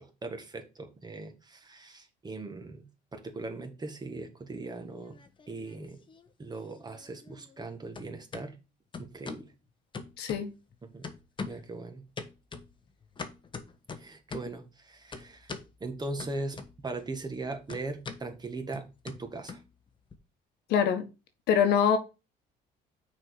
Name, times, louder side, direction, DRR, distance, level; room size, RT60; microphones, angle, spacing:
voice 1, 0.2-5.2 5.5-6.0 6.4-8.6 9.0-9.5 10.8-11.1 11.5-12.0 14.0-15.6 15.8-19.6, right 3 dB, 25° right, 1.8 m, -39 dB
sound 1, 4.8-5.8 6.1-7.7 7.9-8.5 8.9-9.5 9.9-10.7 11.0-11.7 12.2-14.6 15.1-15.7 16.2-17.0 17.3-20.1, left 4 dB, 30° left, 1.1 m, -43 dB
voice 2, 10.2-10.5 20.7-21.0 21.5-22.0, left 8 dB, 80° left, 1.4 m, -24 dB
6.2 x 4.5 x 6.3 m
cardioid pair, 110°, 17 cm